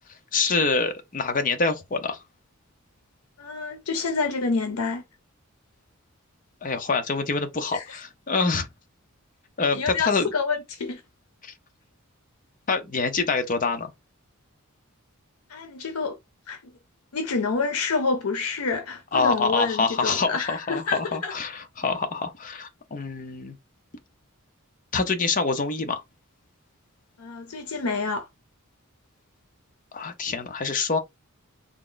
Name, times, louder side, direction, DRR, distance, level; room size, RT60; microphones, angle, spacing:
voice 1, 0.3-2.2 6.6-8.7 9.6-10.3 11.4-11.5 12.7-13.9 19.1-23.6 24.9-26.0 29.9-31.0, left 4 dB, 40° left, 0.6 m, -26 dB
voice 2, 3.4-5.0 7.7-8.0 9.7-11.0 15.5-16.2 16.5-16.6 17.1-21.3 27.2-28.3, left 4 dB, 85° left, 0.6 m, -28 dB
3.5 x 2.0 x 3.8 m
head